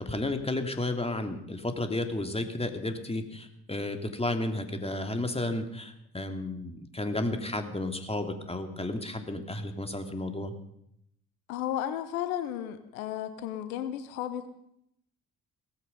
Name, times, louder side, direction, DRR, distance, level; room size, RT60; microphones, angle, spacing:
voice 1, 0.0-10.5, left 2 dB, 15° left, 6 dB, 2.8 m, -32 dB
voice 2, 11.5-14.5, left 11 dB, 85° left, 11 dB, 1.0 m, -33 dB
18.0 x 14.5 x 5.4 m, 0.76 s
hypercardioid pair, 45°, 41 cm